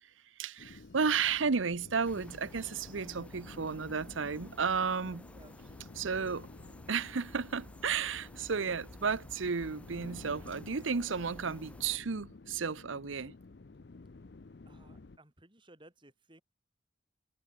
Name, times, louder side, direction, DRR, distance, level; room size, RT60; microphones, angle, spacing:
voice 1, 0.4-5.2 6.0-6.5 6.9-13.3, right 5 dB, 80° right, 0.8 m, -33 dB
sound 1, 0.6-15.2, left 3 dB, 55° left, 0.6 m, -51 dB
sound 2, 2.0-12.0, equal, 5° left, 1.5 m, -54 dB
voice 2, 5.3-6.0 14.6-16.4, right 1 dB, 25° right, 4.4 m, -60 dB
head